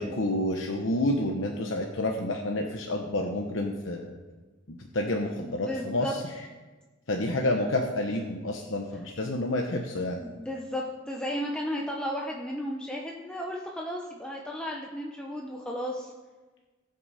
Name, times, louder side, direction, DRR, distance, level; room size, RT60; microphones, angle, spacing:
voice 1, 0.0-4.2 4.7-6.2 7.1-10.2, left 1 dB, 70° left, 2 dB, 1.0 m, -29 dB
voice 2, 5.4-6.1 10.2-16.1, equal, 5° left, -2 dB, 0.9 m, -34 dB
20.0 x 6.7 x 4.2 m, 1.3 s
head